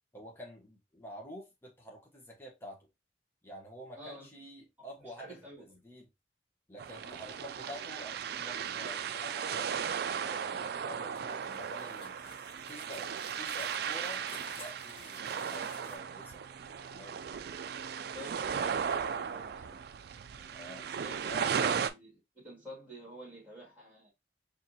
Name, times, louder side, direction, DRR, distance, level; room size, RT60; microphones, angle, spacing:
voice 1, 0.1-2.9 3.4-5.3 5.6-6.0 6.7-12.1 12.7-14.2 14.5-17.2 20.5-20.9 21.2-21.5, equal, 15° left, 1.0 m, -48 dB
voice 2, 4.0-4.3 5.0-5.8 7.0-7.3 18.0-19.8 20.3-20.5 21.0-24.1, equal, 10° right, 2.3 m, -50 dB
sound 1, 6.8-21.9, right 7 dB, 60° right, 0.3 m, -36 dB
sound 2, 11.1-16.0, left 3 dB, 30° left, 1.0 m, -53 dB
4.3 x 2.7 x 2.8 m
head